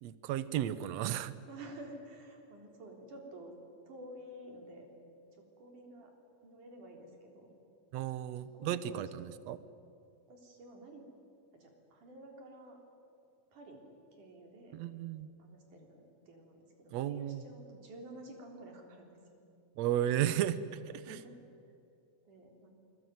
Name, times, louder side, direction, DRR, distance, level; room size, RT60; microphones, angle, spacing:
voice 1, 0.0-1.3 7.9-9.6 14.7-15.3 16.9-17.4 19.8-20.6 20.9-21.2, right 11 dB, 75° right, 15 dB, 1.6 m, -34 dB
voice 2, 1.5-3.5 3.9-4.9 5.3-6.1 6.4-7.5 8.4-9.4 10.3-11.1 11.5-12.8 13.5-14.8 15.4-19.4 20.9-21.4 22.2-22.7, right 1 dB, 60° right, 2 dB, 5.0 m, -51 dB
27.5 x 21.5 x 9.4 m, 2.5 s
omnidirectional pair, 4.1 m